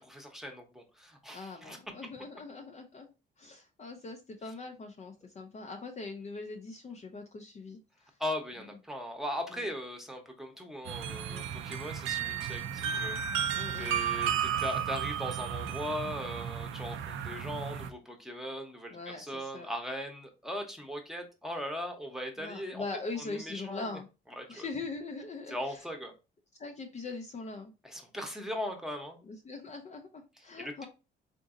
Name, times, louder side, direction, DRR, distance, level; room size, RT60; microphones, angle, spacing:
voice 1, 0.0-1.8 8.2-13.2 13.8-22.8 23.3-23.9 24.4-24.7 25.5-26.1 27.8-29.2 30.6-30.9, equal, ahead, 3 dB, 0.9 m, -39 dB
voice 2, 1.3-3.1 3.4-8.2 9.5-9.7 11.3-11.5 13.5-14.0 18.9-19.7 22.4-24.1 24.5-25.9 26.6-27.7 29.2-30.9, left 3 dB, 35° left, 2 dB, 0.5 m, -42 dB
sound 1, 10.8-17.9, right 8 dB, 80° right, 0.5 m, -33 dB
3.8 x 2.6 x 2.5 m, 0.29 s
cardioid pair, 90°, 20 cm